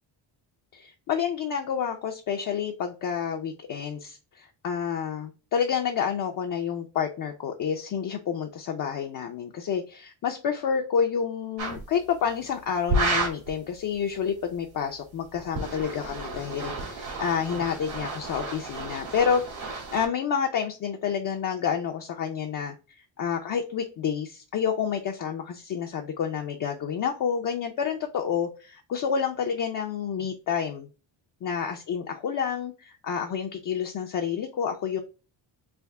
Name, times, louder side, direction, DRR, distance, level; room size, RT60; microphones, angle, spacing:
voice 1, 0.7-19.4 19.9-22.7 23.2-30.9 31.4-35.0, left 7 dB, 45° left, 0.5 m, -29 dB
sound 1, 11.6-11.8 12.9-13.5 15.3-20.1, right 2 dB, 70° right, 1.6 m, -31 dB
3.4 x 2.6 x 3.6 m
cardioid pair, 150°, 46 cm